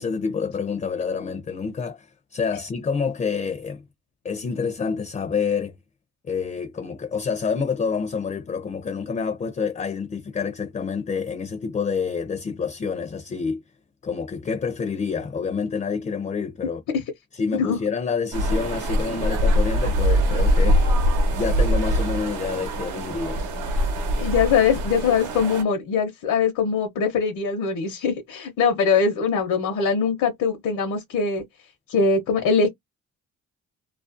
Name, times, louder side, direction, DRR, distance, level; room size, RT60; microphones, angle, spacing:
voice 1, 0.0-3.8 4.2-5.7 6.2-13.6 14.0-16.8 17.3-23.4, left 5 dB, 25° left, 0.4 m, -28 dB
sound 1, 18.3-25.6, equal, 85° right, 0.9 m, -22 dB
voice 2, 24.2-31.4 31.9-32.7, left 5 dB, 75° left, 0.7 m, -22 dB
2.4 x 2.0 x 2.4 m
cardioid pair, 90°, 30 cm